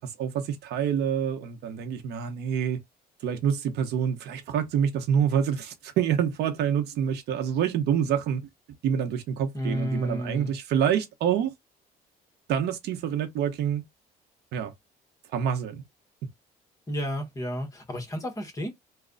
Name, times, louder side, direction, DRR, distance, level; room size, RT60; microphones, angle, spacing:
voice 1, 0.2-2.8 3.2-8.4 8.8-11.5 12.5-13.8 14.5-14.7 15.3-15.8, right 8 dB, 80° right, 0.9 m, -27 dB
voice 2, 9.5-10.5 16.9-18.7, equal, 20° left, 1.3 m, -31 dB
3.2 x 2.3 x 3.9 m
cardioid pair, 110°, 17 cm